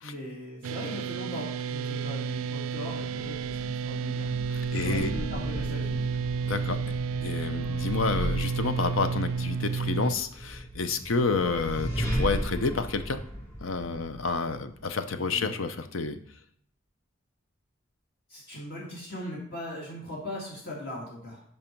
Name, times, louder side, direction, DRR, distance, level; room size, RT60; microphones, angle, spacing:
voice 1, 0.0-4.3 4.6-6.0 15.1-15.5 18.3-21.4, left 1 dB, 50° left, -4 dB, 2.1 m, -39 dB
sound 1, 0.6-10.2, right 5 dB, 85° right, 0.4 m, -31 dB
sound 2, 3.1-14.8, equal, 15° left, 2.6 m, -36 dB
voice 2, 4.5-5.1 6.5-6.8 7.2-13.2 13.6-16.2, left 4 dB, 70° left, 10 dB, 0.7 m, -29 dB
9.0 x 5.5 x 4.5 m, 0.63 s
head